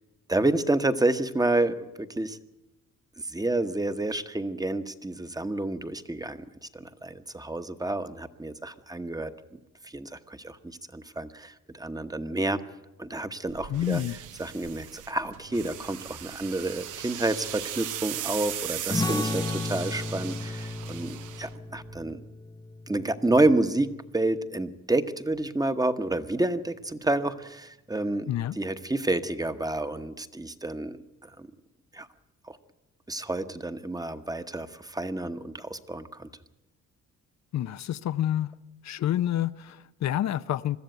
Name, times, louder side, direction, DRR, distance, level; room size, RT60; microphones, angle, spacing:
voice 1, 0.3-2.4 3.3-9.6 9.8-12.6 13.0-14.0 14.4-22.2 22.9-28.3 28.6-31.0 31.2-31.5 31.9-32.1 32.4-32.6 33.1-36.3, right 2 dB, 10° right, 10 dB, 1.1 m, -29 dB
sound 1, 13.5-22.1, right 11 dB, 85° right, 1.0 m, -38 dB
voice 2, 13.7-14.2 28.3-28.6 37.5-38.5 38.8-40.8, left 12 dB, 65° left, 13 dB, 0.6 m, -28 dB
sound 2, 18.9-24.1, left 3 dB, 15° left, 0.7 m, -34 dB
22.0 x 13.5 x 9.3 m, 0.98 s
cardioid pair, 90°, 30 cm